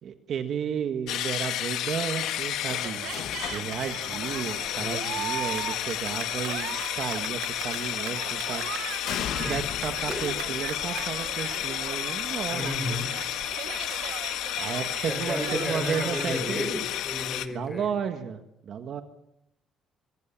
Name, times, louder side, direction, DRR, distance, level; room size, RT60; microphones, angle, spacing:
voice 1, 0.0-3.2 3.5-8.7 9.1-13.0 14.6-16.7 17.5-19.0, right 7 dB, 45° right, 7 dB, 1.6 m, -33 dB
sound 1, 1.1-17.5, left 12 dB, 85° left, 1.6 m, -32 dB
sound 2, 1.5-5.6 7.8-8.4 9.1-14.9 15.2-15.6 16.9-17.0, left 10 dB, 65° left, 1.7 m, -41 dB
Cheering, 2.8-16.5, right 12 dB, 90° right, 1.5 m, -39 dB
voice 2, 4.8-5.3 9.4-9.6 10.1-10.2 12.5-13.1 15.1-17.9, left 1 dB, 10° left, 6 dB, 7.0 m, -33 dB
25.0 x 23.0 x 7.4 m, 0.82 s
cardioid pair, 175°, 0 cm